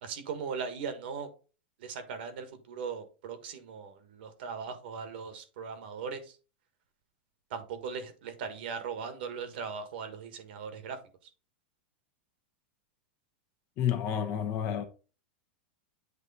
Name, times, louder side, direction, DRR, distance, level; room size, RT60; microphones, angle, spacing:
voice 1, 0.0-1.3 1.8-6.3 7.5-11.0, right 6 dB, 65° right, 1.4 m, -39 dB
voice 2, 13.8-14.8, left 9 dB, 40° left, 1.0 m, -30 dB
8.2 x 3.0 x 4.1 m
supercardioid pair, 140°, 6 cm